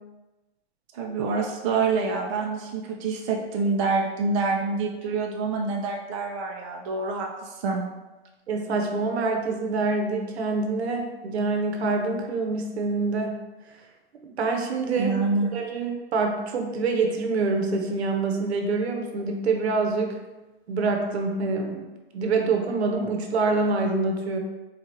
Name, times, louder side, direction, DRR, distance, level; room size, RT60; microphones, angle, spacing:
voice 1, 0.9-7.8 15.0-15.5, right 4 dB, 30° right, -1 dB, 0.4 m, -26 dB
voice 2, 8.5-13.4 14.2-15.2 15.5-20.2 20.7-21.8 22.1-24.4, right 3 dB, 75° right, 3 dB, 0.8 m, -26 dB
4.4 x 2.4 x 2.8 m, 1.1 s
hypercardioid pair, 135°, 33 cm